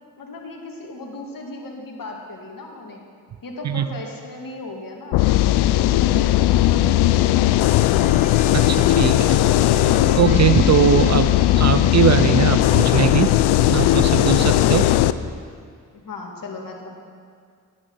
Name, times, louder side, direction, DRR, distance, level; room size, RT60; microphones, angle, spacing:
voice 1, 0.2-3.0 3.4-5.3 5.6-8.0 11.0-11.2 15.9-16.9, left 2 dB, 50° left, 1 dB, 2.2 m, -37 dB
sound 1, 5.1-15.1, left 14 dB, 65° left, 0.5 m, -17 dB
sound 2, 7.2-15.0, left 4 dB, 20° left, 0.6 m, -33 dB
voice 2, 8.5-9.4 10.1-13.4 13.7-14.9, right 9 dB, 40° right, 11 dB, 0.5 m, -20 dB
9.9 x 8.7 x 5.5 m, 2.1 s
hypercardioid pair, 50°, 42 cm